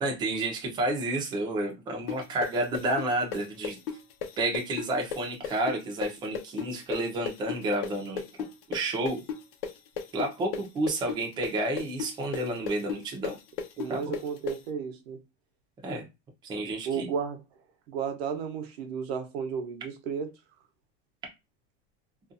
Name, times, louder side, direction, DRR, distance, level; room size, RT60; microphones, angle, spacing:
voice 1, 0.0-3.8 4.4-8.2 8.7-9.2 10.1-13.4 13.9-14.1 15.8-16.1 16.4-17.1, right 1 dB, 15° right, 0.5 m, -30 dB
sound 1, 2.1-9.7 10.0-14.6, left 7 dB, 70° left, 0.7 m, -34 dB
voice 2, 13.8-15.2 16.8-17.4 17.9-20.3, right 6 dB, 90° right, 0.8 m, -33 dB
2.5 x 2.3 x 2.6 m
supercardioid pair, 170°, 30 cm